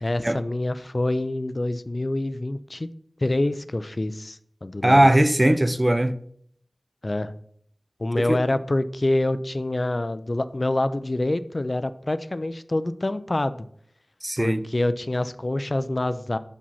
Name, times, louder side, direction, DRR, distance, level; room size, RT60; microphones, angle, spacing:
voice 1, 0.0-2.9 3.2-5.1 7.0-7.3 8.0-13.7 14.4-16.4, left 2 dB, 45° left, 0.4 m, -26 dB
voice 2, 4.8-6.1 8.2-8.4 14.2-14.6, right 1 dB, 25° right, 0.4 m, -19 dB
5.6 x 5.1 x 5.6 m
wide cardioid pair, 55°, 0 cm